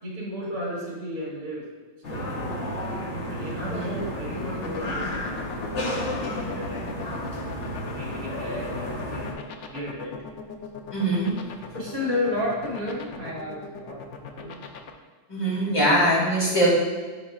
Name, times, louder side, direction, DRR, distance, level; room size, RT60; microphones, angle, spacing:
voice 1, 0.0-1.6 2.1-2.6 3.2-7.0 7.3-7.4 7.9-9.4 9.7-10.1 11.7-14.6 15.5-15.7 16.1-16.7, left 1 dB, 60° right, -6 dB, 2.9 m, -33 dB
sound 1, 2.0-9.3, equal, 45° left, 1.2 m, -32 dB
voice 2, 3.6-4.0 10.9-11.3 15.3-16.7, right 1 dB, 15° left, -7 dB, 2.1 m, -22 dB
sound 2, 4.5-14.9, left 6 dB, 70° left, 0.6 m, -38 dB
10.5 x 4.8 x 2.4 m, 1.4 s
omnidirectional pair, 1.9 m